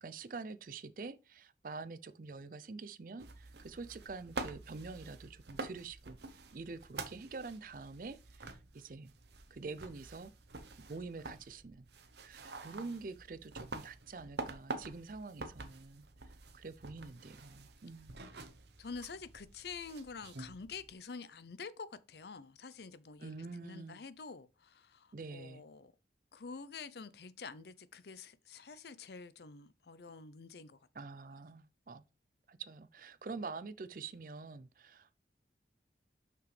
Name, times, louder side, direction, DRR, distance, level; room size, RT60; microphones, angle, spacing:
voice 1, 0.0-6.2 6.5-9.1 9.5-10.3 10.9-11.9 12.2-16.0 16.5-18.2 23.2-24.0 25.1-25.6 30.9-32.0 32.5-35.1, right 4 dB, 50° right, 0.5 m, -46 dB
sound 1, 3.2-20.9, right 3 dB, 75° right, 0.9 m, -48 dB
voice 2, 12.7-13.0 18.8-23.3 23.6-25.9 26.3-30.8, left 5 dB, 70° left, 0.6 m, -48 dB
6.0 x 5.8 x 3.3 m
head